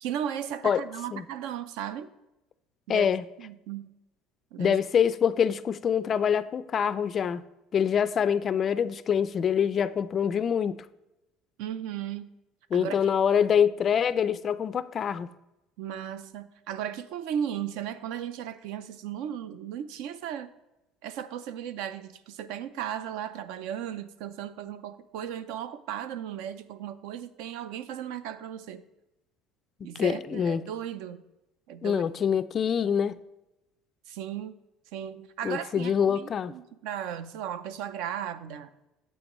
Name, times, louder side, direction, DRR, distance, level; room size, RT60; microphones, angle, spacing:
voice 1, 0.0-2.1 2.9-3.1 3.4-3.9 4.5-4.8 11.6-12.3 12.7-13.0 15.8-20.5 21.0-28.8 29.8-31.2 31.7-32.0 34.1-34.5 34.9-38.7, right 9 dB, 75° right, 0.6 m, -36 dB
voice 2, 2.9-3.2 4.6-7.4 7.7-10.8 12.7-15.3 30.0-30.6 31.8-33.2 35.4-36.5, left 8 dB, 30° left, 0.3 m, -25 dB
8.6 x 7.9 x 3.1 m
cardioid pair, 160°, 0 cm